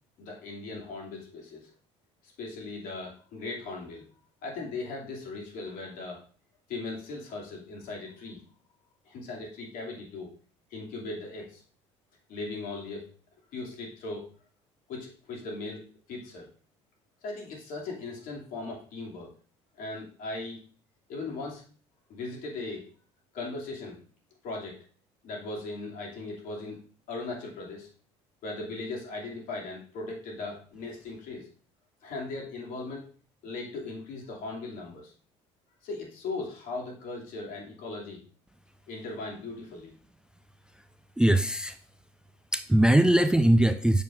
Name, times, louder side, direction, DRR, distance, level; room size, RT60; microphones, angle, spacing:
voice 1, 0.2-1.7 2.2-4.0 4.4-6.2 6.7-8.4 9.1-10.3 10.7-11.6 12.3-13.1 13.5-14.3 14.9-16.5 17.2-19.3 19.8-20.6 21.1-21.6 22.1-22.9 23.3-24.0 24.4-24.8 25.2-26.8 27.1-27.9 28.4-31.5 32.0-33.0 33.4-35.1 35.8-38.2 38.9-39.9, left 3 dB, 65° left, -1 dB, 2.6 m, -38 dB
voice 2, 41.2-41.7 42.5-44.0, right 1 dB, 5° right, 9 dB, 0.4 m, -21 dB
6.9 x 6.8 x 2.6 m, 0.42 s
hypercardioid pair, 70°, 16 cm